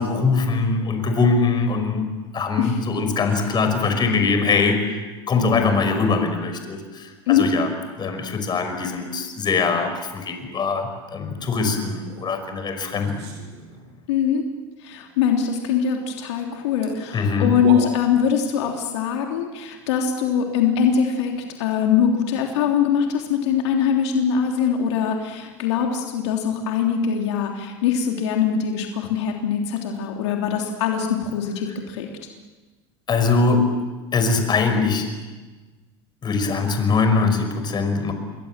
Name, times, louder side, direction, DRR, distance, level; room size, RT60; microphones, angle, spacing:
voice 1, 0.0-2.1 2.3-5.0 5.3-7.7 8.0-13.3 17.1-17.5 33.1-33.7 34.1-35.1 36.2-38.1, left 4 dB, 30° left, 6 dB, 5.4 m, -22 dB
sound 1, 12.0-12.3 12.9-14.0 16.5-16.6 16.8-16.9 17.4-18.4, right 4 dB, 75° right, 7.6 m, -34 dB
voice 2, 14.1-14.5 14.8-21.3 21.6-32.1, left 7 dB, 80° left, 2 dB, 3.3 m, -22 dB
28.0 x 22.5 x 7.5 m, 1.3 s
supercardioid pair, 105°, 14 cm